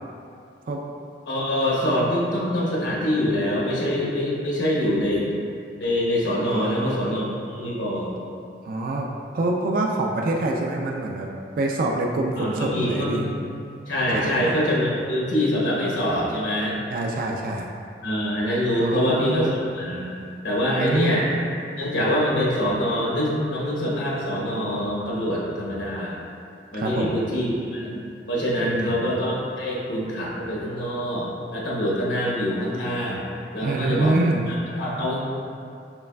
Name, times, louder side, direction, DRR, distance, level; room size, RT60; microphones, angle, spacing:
voice 1, 1.3-5.3 5.8-8.1 12.4-13.3 13.9-16.7 18.0-20.1 20.4-21.3 21.8-26.2 26.7-28.0 28.3-33.2 33.5-34.1 34.7-35.2, equal, 80° left, -5 dB, 1.0 m, -24 dB
voice 2, 6.5-7.1 8.7-9.1 9.3-11.3 11.6-13.3 14.1-14.5 16.9-17.7 18.8-19.6 20.7-21.3 26.7-27.2 28.6-29.0 33.6-34.5, right 2 dB, 50° right, 0 dB, 0.3 m, -26 dB
6.7 x 3.2 x 2.2 m, 2.4 s
head